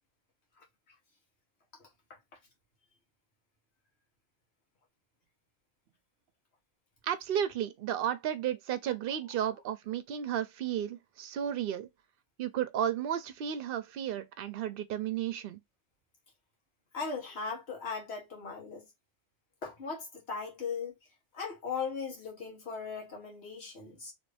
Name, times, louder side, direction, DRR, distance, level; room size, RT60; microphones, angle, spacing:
voice 1, 0.6-0.9 1.8-2.2 8.8-8.9 9.3-9.6 16.9-18.9 19.6-20.9 21.3-24.1, left 5 dB, 85° left, 1.6 m, -39 dB
voice 2, 7.1-11.9 12.4-15.6, right 10 dB, 65° right, 0.7 m, -33 dB
3.2 x 2.6 x 3.3 m
omnidirectional pair, 1.1 m